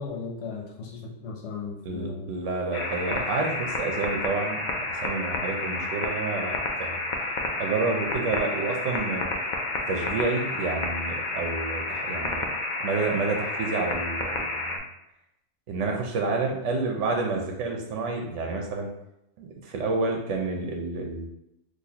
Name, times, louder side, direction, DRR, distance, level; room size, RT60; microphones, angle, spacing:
voice 1, 0.0-2.3 8.1-8.3, left 4 dB, 80° left, -1 dB, 1.1 m, -36 dB
voice 2, 1.8-7.0 7.6-9.3 9.9-12.5 12.8-14.8 15.7-18.9 19.4-21.3, right 3 dB, 90° right, 2 dB, 1.0 m, -29 dB
sound 1, 2.7-14.8, left 2 dB, 55° left, 0.5 m, -30 dB
4.1 x 2.7 x 2.8 m, 0.84 s
omnidirectional pair, 1.2 m